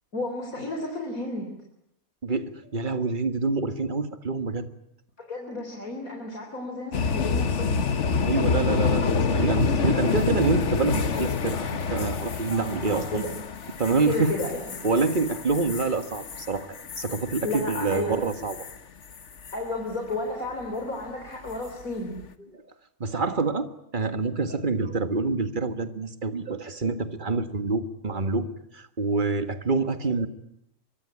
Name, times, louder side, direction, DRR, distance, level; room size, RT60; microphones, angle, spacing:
voice 1, 0.1-1.5 5.2-7.8 12.5-13.3 14.1-14.8 17.4-18.2 19.5-22.2, left 2 dB, 75° left, 2 dB, 4.3 m, -32 dB
voice 2, 2.2-4.7 8.2-13.2 13.8-14.3 14.8-16.7 17.0-18.6 22.5-22.6 23.0-23.7 23.9-28.5 28.7-30.3, right 3 dB, 35° right, 10 dB, 1.8 m, -26 dB
sound 1, 6.9-18.8 19.1-19.5 21.5-21.8, left 5 dB, 55° left, 1.5 m, -27 dB
24.0 x 23.0 x 9.9 m, 0.77 s
omnidirectional pair, 1.5 m